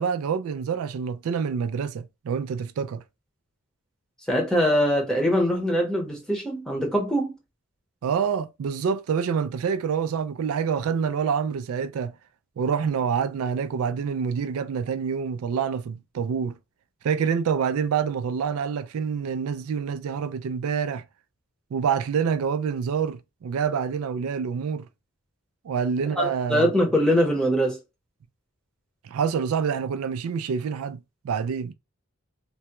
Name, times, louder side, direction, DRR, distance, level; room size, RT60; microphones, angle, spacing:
voice 1, 0.0-3.0 8.0-12.1 12.6-16.5 17.0-21.0 21.7-24.9 25.6-26.7 29.0-31.7, right 6 dB, 85° right, 0.3 m, -27 dB
voice 2, 4.3-7.3 26.1-27.8, equal, 5° left, 0.8 m, -23 dB
3.4 x 2.2 x 2.9 m
head